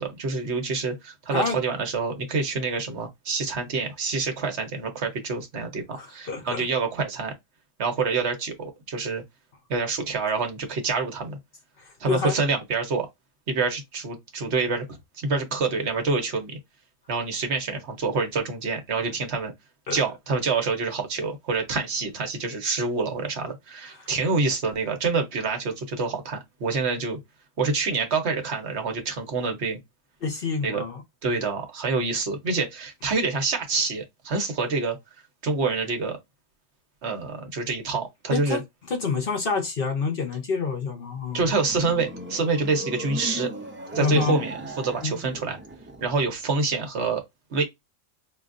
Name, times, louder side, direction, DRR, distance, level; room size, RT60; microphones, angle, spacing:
voice 1, 0.0-7.3 7.8-9.2 9.7-11.4 12.0-13.1 13.5-16.6 17.1-19.5 19.9-27.2 27.6-29.8 30.6-30.8 31.2-35.0 35.4-36.2 37.0-38.6 41.3-43.5 43.9-45.6 46.0-47.2 47.5-47.6, right 4 dB, 60° right, 1.1 m, -27 dB
voice 2, 5.9-6.6 11.8-12.3 19.9-20.0 23.9-24.1 30.2-31.0 38.3-38.6 38.9-41.5 44.0-44.4 45.0-45.2, left 4 dB, 50° left, 0.9 m, -28 dB
sound 1, 41.0-46.4, right 1 dB, 15° right, 0.4 m, -38 dB
5.0 x 2.5 x 2.5 m
omnidirectional pair, 1.3 m